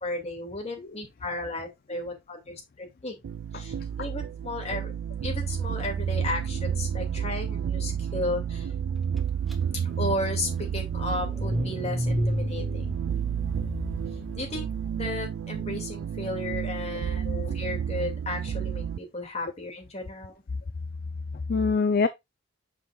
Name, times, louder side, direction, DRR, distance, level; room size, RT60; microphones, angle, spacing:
voice 1, 0.0-3.2 3.5-4.9 5.2-8.7 10.0-12.8 14.3-14.7 14.9-17.3 17.5-20.3, left 2 dB, 35° left, 2.3 m, -34 dB
sound 1, 3.2-19.0, right 8 dB, 90° right, 0.3 m, -31 dB
Car / Engine starting, 9.5-9.6 9.9-15.1, equal, ahead, 0.9 m, -32 dB
voice 2, 17.2-17.6 21.3-22.1, left 4 dB, 50° left, 0.5 m, -27 dB
7.4 x 5.5 x 2.4 m
head